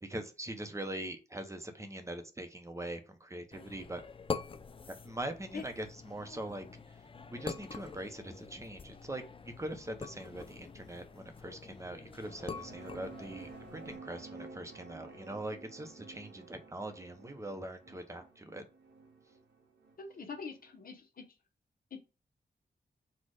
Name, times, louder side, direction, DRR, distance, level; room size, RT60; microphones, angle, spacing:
voice 1, 0.0-4.0 4.9-6.8 7.3-18.7, right 1 dB, 15° right, 7 dB, 0.8 m, -42 dB
sound 1, 3.5-14.0, left 5 dB, 30° left, 0.4 m, -45 dB
sound 2, 12.1-20.7, right 4 dB, 85° right, 1.1 m, -52 dB
voice 2, 20.0-21.2 21.9-22.0, left 5 dB, 55° left, 4 dB, 1.0 m, -43 dB
4.3 x 2.4 x 4.8 m, 0.32 s
cardioid pair, 85°, 18 cm